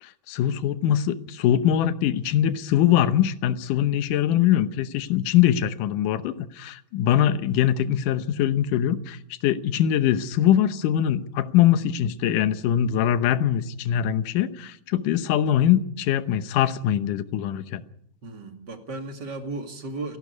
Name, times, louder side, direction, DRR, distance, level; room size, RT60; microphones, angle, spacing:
voice 1, 0.0-17.8, left 11 dB, 70° left, 2.2 m, -22 dB
voice 2, 18.2-20.2, right 2 dB, 30° right, 2.3 m, -35 dB
29.5 x 11.5 x 9.6 m
omnidirectional pair, 4.6 m